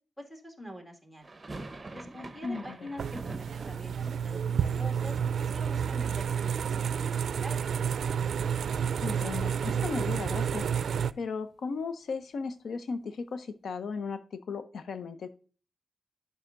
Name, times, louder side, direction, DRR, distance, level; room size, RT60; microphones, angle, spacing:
voice 1, 0.2-1.3 1.9-7.6, equal, 10° left, 3 dB, 2.0 m, -45 dB
sound 1, 1.2-7.2 7.4-8.3 8.5-8.6 8.9-11.1, right 2 dB, 25° right, 0.9 m, -47 dB
voice 2, 2.4-2.9 9.0-10.7 11.2-15.3, left 4 dB, 80° left, 12 dB, 0.6 m, -36 dB
sound 2, 3.0-11.1, right 7 dB, 90° right, 0.3 m, -30 dB
11.5 x 5.5 x 2.5 m, 0.39 s
wide cardioid pair, 125°, 0 cm